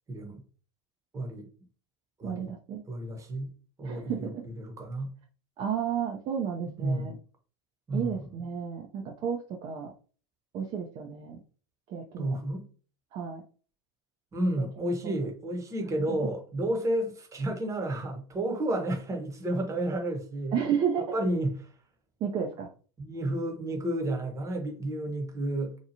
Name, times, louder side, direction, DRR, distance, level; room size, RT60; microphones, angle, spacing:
voice 1, 0.1-0.4 1.1-1.5 2.2-2.6 2.9-3.5 3.8-5.1 6.8-7.2 7.9-8.3 12.2-12.7 14.3-20.6 21.0-21.7 23.0-25.8, right 1 dB, 20° right, 0.9 m, -31 dB
voice 2, 2.2-2.8 3.8-4.4 5.6-7.1 7.9-9.9 10.5-11.4 11.9-12.4 13.1-13.4 14.6-14.9 16.1-16.2 20.5-21.0 22.2-22.7, right 7 dB, 35° right, 0.5 m, -32 dB
2.8 x 2.3 x 2.6 m
hypercardioid pair, 95°, 16 cm